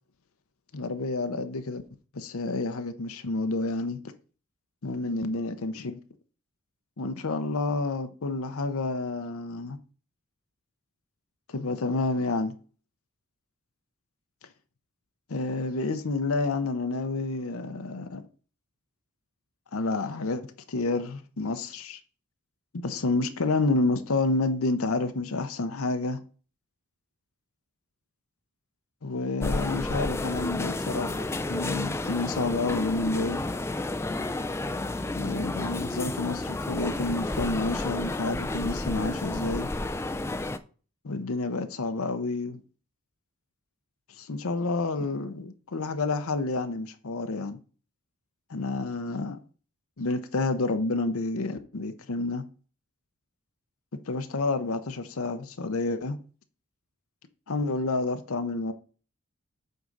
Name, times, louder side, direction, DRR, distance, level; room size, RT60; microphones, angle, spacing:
voice 1, 0.7-1.8 2.1-4.0 4.8-6.0 7.0-9.8 11.5-12.5 15.3-18.2 19.7-20.4 20.7-22.0 22.7-26.2 29.0-33.4 35.2-39.7 41.0-42.6 44.1-47.6 48.5-49.4 50.0-52.4 54.1-56.2 57.5-58.7, left 3 dB, 70° left, 0.7 m, -29 dB
sound 1, 29.4-40.6, left 2 dB, 10° left, 0.3 m, -31 dB
7.9 x 3.8 x 5.3 m
head